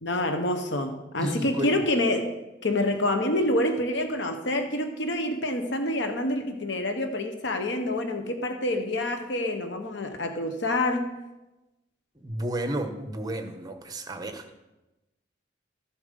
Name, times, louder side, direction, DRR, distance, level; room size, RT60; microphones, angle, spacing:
voice 1, 0.0-2.3 2.6-11.1, left 1 dB, 70° left, 6 dB, 1.1 m, -27 dB
voice 2, 1.2-1.8 12.2-14.6, right 1 dB, 20° right, 7 dB, 1.1 m, -32 dB
13.0 x 7.4 x 5.3 m, 1.0 s
head